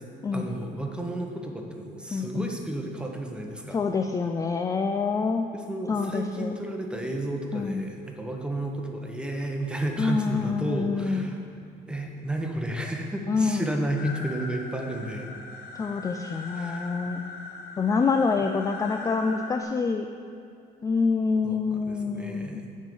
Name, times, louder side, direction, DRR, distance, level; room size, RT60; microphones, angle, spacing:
voice 1, 0.3-3.8 5.5-11.4 11.9-15.3 16.5-16.9 21.4-22.7, right 1 dB, 5° right, 2 dB, 0.9 m, -32 dB
voice 2, 2.1-2.5 3.7-5.5 5.9-6.5 7.5-7.9 10.0-11.4 13.3-13.7 15.8-17.2 17.8-20.1 20.8-22.6, left 4 dB, 20° left, 5 dB, 0.3 m, -26 dB
sound 1, 14.0-19.6, left 3 dB, 70° left, 0.8 m, -40 dB
9.3 x 3.6 x 6.7 m, 2.5 s
cardioid pair, 110°, 17 cm